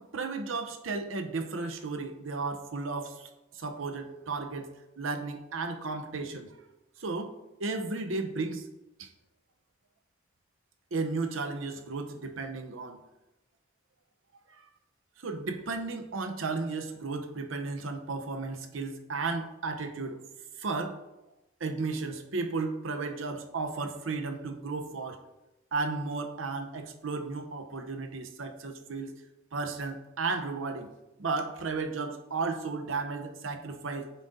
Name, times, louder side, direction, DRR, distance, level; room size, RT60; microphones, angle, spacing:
voice 1, 0.0-4.7 5.0-6.6 7.0-7.3 7.6-8.6 9.0-9.1 10.9-13.0 14.5-14.6 15.2-20.2 20.6-21.0 21.6-25.2 25.7-29.2 29.5-30.9 31.2-34.1, right 3 dB, 85° right, 7 dB, 0.7 m, -34 dB
9.1 x 3.8 x 4.0 m, 0.98 s
head